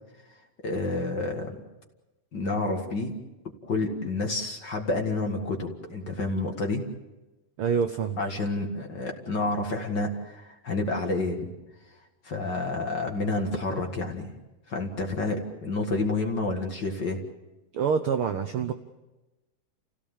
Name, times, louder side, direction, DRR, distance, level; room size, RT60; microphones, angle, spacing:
voice 1, 0.6-1.6 2.3-3.1 3.7-6.8 8.2-11.5 12.2-14.4 14.7-17.2, left 2 dB, 40° left, 3 dB, 2.0 m, -29 dB
voice 2, 7.6-8.2 17.7-18.7, right 6 dB, 85° right, 7 dB, 1.2 m, -26 dB
29.5 x 16.5 x 7.3 m, 1.1 s
omnidirectional pair, 3.7 m